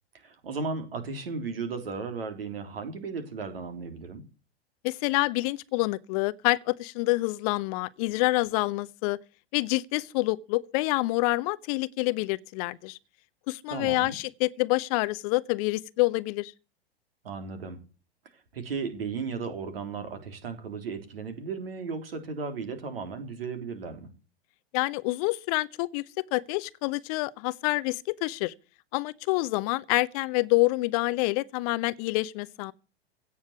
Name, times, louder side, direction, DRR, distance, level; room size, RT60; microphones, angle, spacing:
voice 1, 0.1-4.2 13.7-14.2 17.2-17.8 18.3-24.1, right 4 dB, 65° right, 3.5 m, -35 dB
voice 2, 4.8-9.2 9.5-13.0 13.5-16.5 24.7-26.0 26.3-28.5 28.9-32.7, left 22 dB, 35° left, 0.7 m, -27 dB
16.5 x 7.3 x 8.4 m
figure-of-eight pair, 95°, 32 cm